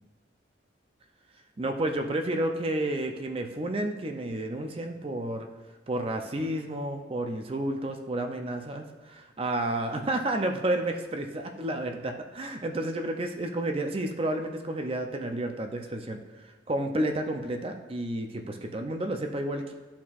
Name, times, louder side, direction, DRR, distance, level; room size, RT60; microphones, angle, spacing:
voice 1, 1.6-5.5 5.9-16.2 16.7-19.7, right 1 dB, 30° right, 4 dB, 0.5 m, -31 dB
12.5 x 4.3 x 2.4 m, 1.4 s
head